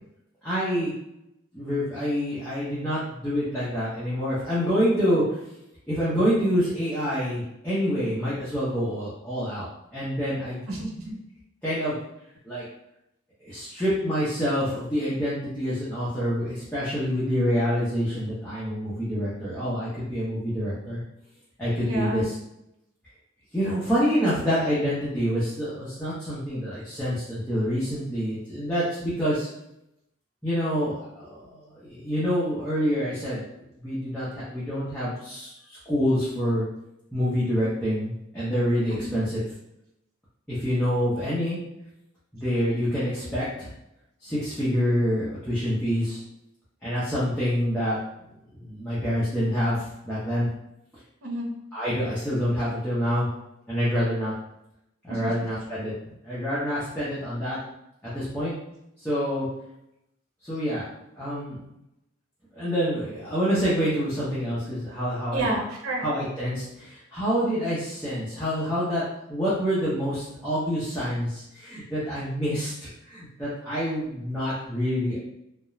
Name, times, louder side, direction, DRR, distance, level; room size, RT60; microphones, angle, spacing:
voice 1, 0.4-0.9 1.5-5.4 5.9-9.7 9.9-10.6 11.6-12.0 12.4-12.6 13.4-21.0 21.6-22.3 23.5-29.5 30.4-33.4 33.8-36.7 37.1-39.4 40.5-41.6 42.3-43.7 44.2-46.2 46.8-48.0 48.5-50.5 51.7-53.3 53.7-54.3 55.0-55.9 56.2-57.6 58.0-58.5 59.0-59.5 60.4-60.9 61.2-61.6 62.5-65.4 66.0-69.0 69.3-75.2, equal, 5° left, -11 dB, 0.6 m, -27 dB
voice 2, 10.7-11.2 21.8-22.3 38.9-39.2 51.2-51.5 55.1-55.5 65.3-66.0, right 1 dB, 85° right, -1 dB, 0.7 m, -30 dB
2.4 x 2.1 x 3.0 m, 0.83 s
head